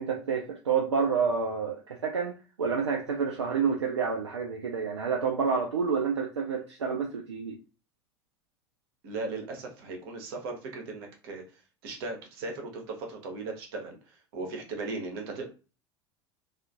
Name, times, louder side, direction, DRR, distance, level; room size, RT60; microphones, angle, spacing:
voice 1, 0.0-7.6, right 6 dB, 80° right, 0.4 m, -29 dB
voice 2, 9.0-11.4 11.8-15.4, right 3 dB, 55° right, 0.8 m, -37 dB
2.4 x 2.3 x 2.5 m
figure-of-eight pair, 70°, 15 cm